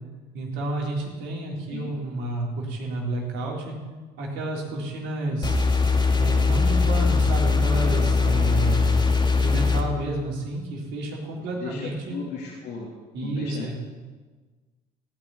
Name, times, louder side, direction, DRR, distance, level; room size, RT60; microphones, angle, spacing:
voice 1, 0.3-3.8 4.2-5.6 6.2-9.0 9.4-12.2 13.1-13.7, right 2 dB, 70° right, -2 dB, 4.0 m, -30 dB
sound 1, 5.4-9.8, left 4 dB, 25° left, 2.2 m, -21 dB
voice 2, 11.6-12.9 13.1-13.7, left 4 dB, 60° left, -3 dB, 3.1 m, -36 dB
16.5 x 6.0 x 9.4 m, 1.3 s
supercardioid pair, 70°, 19 cm